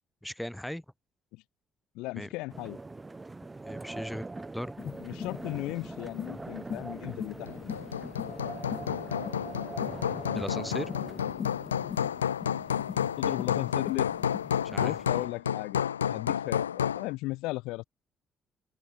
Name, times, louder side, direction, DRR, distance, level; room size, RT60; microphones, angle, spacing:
voice 1, 0.2-0.8 2.1-2.3 3.6-4.7 10.3-10.9 14.6-15.0, equal, 5° left, 1.4 m, -37 dB
voice 2, 1.9-2.8 5.0-7.7 13.2-14.2 14.7-17.8, left 21 dB, 70° left, 1.6 m, -36 dB
sound 1, 2.5-11.3, right 3 dB, 20° right, 1.3 m, -42 dB
sound 2, 4.8-15.2, left 7 dB, 45° left, 1.8 m, -42 dB
Hammer, 7.5-17.1, left 8 dB, 85° left, 0.7 m, -31 dB
open air
figure-of-eight pair, 45°, 0 cm